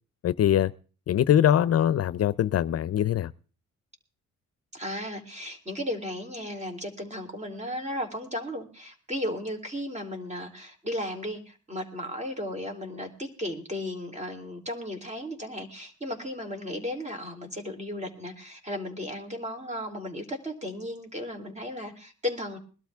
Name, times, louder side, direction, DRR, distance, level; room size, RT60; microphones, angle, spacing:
voice 1, 0.2-0.7 1.1-3.3, left 10 dB, 55° left, 0.6 m, -22 dB
voice 2, 4.7-22.6, left 1 dB, 25° right, 3.7 m, -35 dB
21.0 x 12.5 x 3.6 m
cardioid pair, 90°, 30 cm